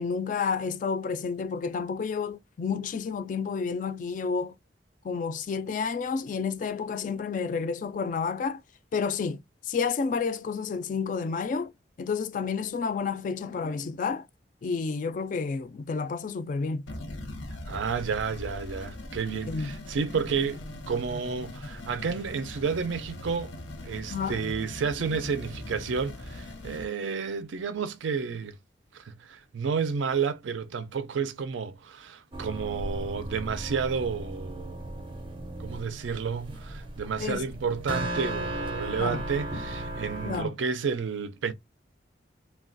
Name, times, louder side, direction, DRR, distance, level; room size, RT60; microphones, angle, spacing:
voice 1, 0.0-4.5 5.0-8.6 8.9-9.4 9.7-11.7 12.0-14.3 14.6-16.8 19.5-19.7 24.1-24.4 37.2-37.4 39.0-39.2 40.2-40.5, left 5 dB, 45° left, 0.3 m, -30 dB
sound 1, 16.9-26.9, left 1 dB, 90° left, 0.7 m, -40 dB
voice 2, 17.7-20.6 20.9-23.5 23.8-28.6 28.9-34.8 35.6-41.5, right 5 dB, 85° right, 0.4 m, -31 dB
sound 2, 32.3-40.5, right 1 dB, 25° right, 0.5 m, -36 dB
3.1 x 2.2 x 2.5 m
head